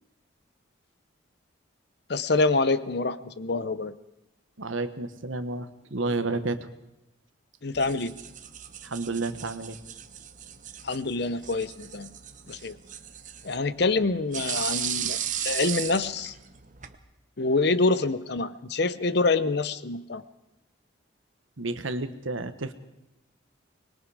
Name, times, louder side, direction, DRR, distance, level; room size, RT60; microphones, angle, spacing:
voice 1, 2.1-3.9 7.6-8.1 10.8-12.1 12.5-12.8 13.4-16.3 17.4-20.2, left 3 dB, 55° left, 15 dB, 0.8 m, -26 dB
voice 2, 4.6-6.7 8.8-9.8 21.6-22.7, right 3 dB, 80° right, 10 dB, 1.3 m, -31 dB
sound 1, 7.7-17.0, right 10 dB, 40° right, 1.0 m, -36 dB
24.5 x 22.0 x 4.9 m, 0.90 s
head